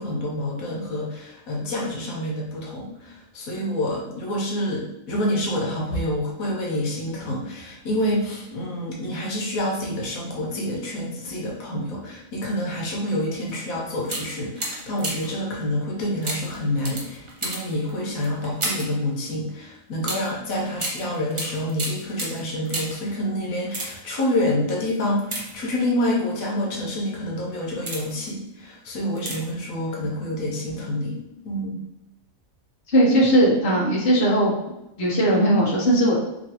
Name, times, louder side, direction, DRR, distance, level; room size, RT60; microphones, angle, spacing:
voice 1, 0.0-31.2 31.4-31.8, left 1 dB, 90° left, -2 dB, 1.2 m, -27 dB
sound 1, 13.5-13.6 14.0-15.4 16.2-19.0 20.0-23.1 23.6-24.2 25.2-26.0 26.7-26.9 27.5-28.3 29.2-29.6 29.9-30.0, right 2 dB, 50° right, 0.3 m, -33 dB
voice 2, 32.9-34.5 35.0-36.2, right 1 dB, 50° left, -4 dB, 1.0 m, -18 dB
3.1 x 2.6 x 2.8 m, 0.91 s
omnidirectional pair, 1.4 m